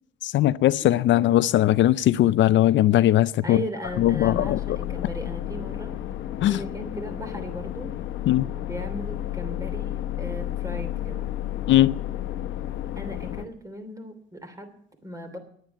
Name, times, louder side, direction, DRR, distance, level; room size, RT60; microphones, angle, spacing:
voice 1, 0.2-3.6 4.0-4.8 6.4-6.6 8.3-8.5 11.7-12.0, left 13 dB, 70° left, 0.4 m, -19 dB
voice 2, 0.8-1.4 3.4-5.9 6.5-7.9 8.5-11.3 13.0-15.4, right 1 dB, 15° right, 3.0 m, -37 dB
sound 1, 3.9-13.5, left 12 dB, 85° left, 0.9 m, -32 dB
10.5 x 9.2 x 9.2 m
cardioid pair, 90°, 20 cm